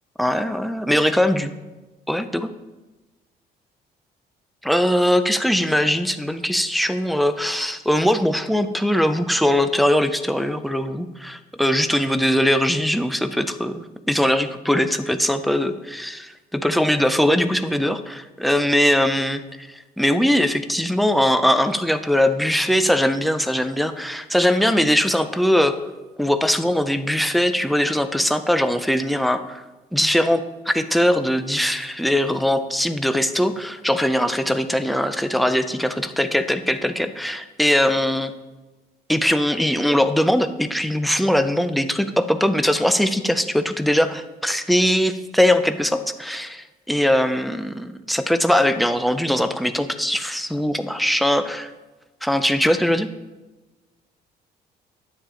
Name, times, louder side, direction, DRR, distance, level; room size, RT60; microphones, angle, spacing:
voice 1, 0.2-1.5 2.1-2.5 4.6-25.8 26.2-29.6 29.9-38.3 39.1-51.7 52.2-53.1, equal, ahead, 9 dB, 0.4 m, -21 dB
9.9 x 8.6 x 3.8 m, 1.1 s
cardioid pair, 170°, 17 cm